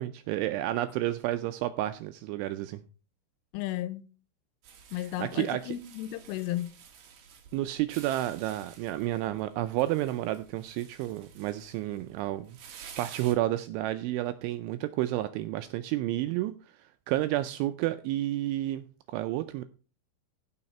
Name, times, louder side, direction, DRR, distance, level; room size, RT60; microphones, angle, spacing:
voice 1, 0.0-2.8 4.9-5.8 7.5-19.6, right 15 dB, 85° right, 2.7 m, -31 dB
voice 2, 3.5-4.0 4.9-6.7, left 14 dB, 80° left, 3.0 m, -34 dB
sound 1, 4.6-13.3, right 7 dB, 60° right, 3.1 m, -51 dB
15.0 x 5.7 x 4.3 m
omnidirectional pair, 5.9 m